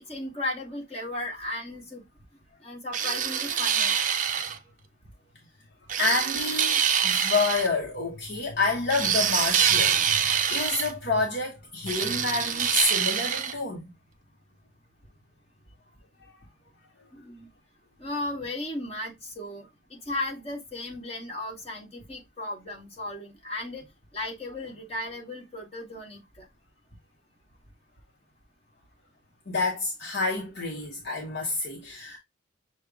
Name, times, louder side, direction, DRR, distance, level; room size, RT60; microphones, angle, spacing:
voice 1, 0.1-2.0 2.6-3.9 17.1-17.5 18.0-23.8 24.1-26.5, left 1 dB, 30° left, 1.8 m, -35 dB
sound 1, 2.9-4.6 5.9-7.7 8.9-10.9 11.9-13.5, right 8 dB, 40° right, 0.5 m, -25 dB
voice 2, 6.0-13.8 16.3-16.4 29.5-32.2, left 3 dB, 55° left, 1.0 m, -28 dB
6.3 x 2.3 x 3.5 m
head